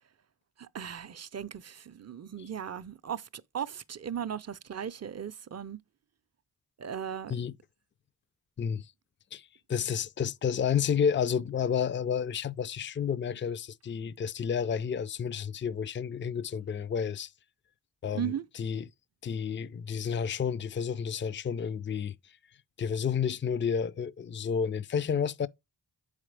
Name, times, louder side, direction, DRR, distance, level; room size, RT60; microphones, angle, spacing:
voice 1, 0.6-5.8 6.8-7.3 18.1-18.4, right 8 dB, 35° right, 0.5 m, -37 dB
voice 2, 8.6-8.9 9.3-17.3 18.0-18.8 19.2-22.1 22.8-25.5, left 7 dB, 30° left, 0.4 m, -31 dB
7.1 x 5.0 x 3.2 m
cardioid pair, 50°, 45 cm